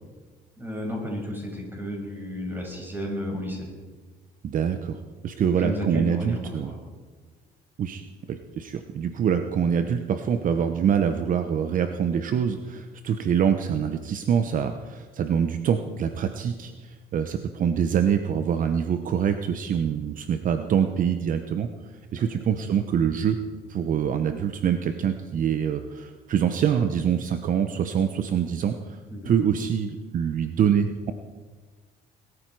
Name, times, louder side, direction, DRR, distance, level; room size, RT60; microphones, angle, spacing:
voice 1, 0.6-3.7 5.4-6.8 22.2-22.4 29.1-29.3, left 1 dB, 10° right, -1 dB, 6.5 m, -33 dB
voice 2, 4.4-6.7 7.8-8.0 8.3-23.4 23.7-29.0 29.2-31.1, right 8 dB, 50° right, 8 dB, 1.0 m, -25 dB
21.0 x 14.0 x 4.9 m, 1.4 s
cardioid pair, 110°, 17 cm